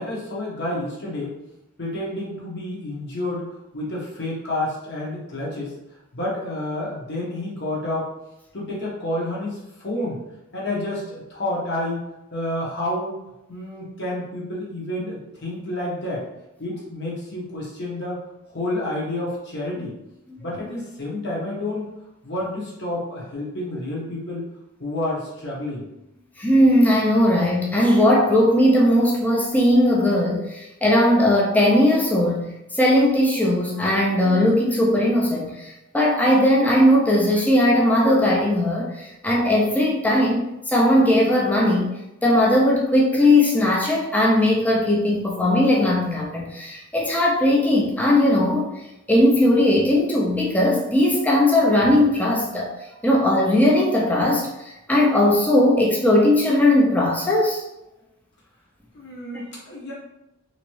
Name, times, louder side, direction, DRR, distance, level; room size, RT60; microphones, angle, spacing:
voice 1, 0.0-1.3 1.8-3.5 3.7-5.7 6.1-8.1 8.5-10.2 10.5-12.0 12.3-13.2 13.5-16.2 16.6-18.2 18.5-19.9 20.4-21.9 22.2-24.5 24.8-25.9 58.9-59.9, left 1 dB, 50° left, -4 dB, 1.2 m, -29 dB
voice 2, 26.4-41.9 42.2-48.7 49.1-52.7 53.0-57.6, left 1 dB, 5° left, -3 dB, 0.4 m, -18 dB
3.5 x 3.0 x 3.1 m, 0.92 s
head